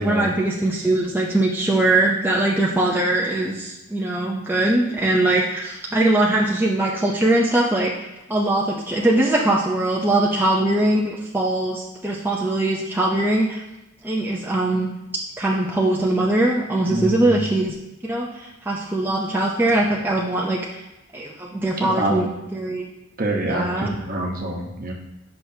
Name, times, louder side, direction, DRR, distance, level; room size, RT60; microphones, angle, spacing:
voice 1, 0.0-13.6 14.0-14.9 15.4-17.7 18.0-20.8 21.1-22.9 23.5-23.9, right 1 dB, 10° right, -4 dB, 0.5 m, -21 dB
voice 2, 16.9-17.3 21.8-22.3 23.2-24.9, right 1 dB, 45° right, 0 dB, 1.0 m, -25 dB
8.3 x 5.7 x 2.7 m, 0.95 s
head